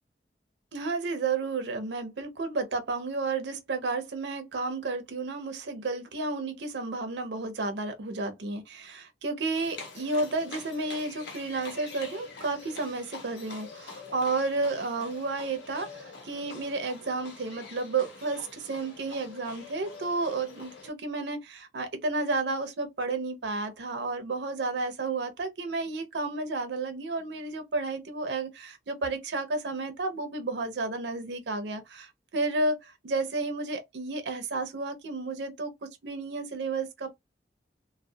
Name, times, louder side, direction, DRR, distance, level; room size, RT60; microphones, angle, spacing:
voice 1, 0.7-37.1, right 3 dB, 80° right, 0.5 m, -32 dB
Livestock farm animals working animals, 9.5-20.9, left 4 dB, 85° left, 0.9 m, -45 dB
2.2 x 2.1 x 2.6 m
head